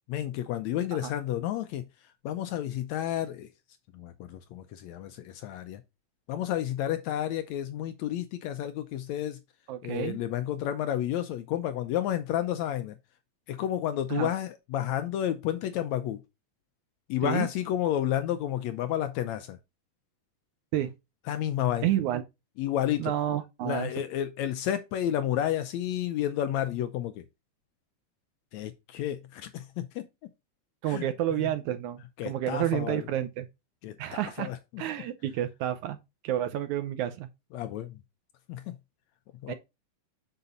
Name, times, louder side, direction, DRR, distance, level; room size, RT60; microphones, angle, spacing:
voice 1, 0.1-1.8 2.2-3.5 3.9-5.8 6.3-9.4 9.8-13.0 13.5-16.2 17.1-19.6 21.3-21.9 22.6-23.1 23.6-27.2 28.5-30.1 30.9-31.1 31.3-31.4 32.2-33.1 33.8-34.8 37.5-38.0 38.5-38.7 39.4-39.5, left 11 dB, 85° left, 1.6 m, -31 dB
voice 2, 9.7-10.2 14.1-14.3 17.2-17.5 20.7-20.9 21.8-22.2 23.0-23.9 30.8-33.5 34.0-34.5 34.8-36.0 36.2-37.3 39.5-39.6, right 12 dB, 75° right, 1.8 m, -30 dB
8.2 x 6.7 x 2.6 m
omnidirectional pair, 4.0 m